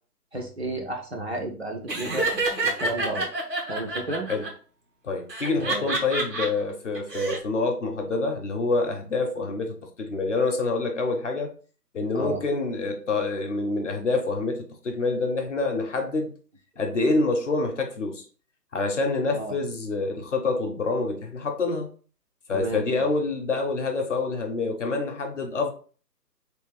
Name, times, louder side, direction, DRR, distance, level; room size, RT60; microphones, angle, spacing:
voice 1, 0.3-2.3 2.6-3.3 3.7-4.3 5.6-5.9 12.1-12.4 19.3-19.5 22.5-22.8, right 2 dB, 40° right, 0.5 m, -32 dB
Laughter, 1.9-4.5 5.3-6.5 6.9-7.4, right 2 dB, 80° right, 2.0 m, -27 dB
voice 2, 5.0-11.5 11.9-16.3 16.8-18.3 18.7-21.9 22.5-25.7, left 3 dB, 45° left, 0.7 m, -27 dB
3.4 x 2.9 x 3.2 m
hypercardioid pair, 165°, 49 cm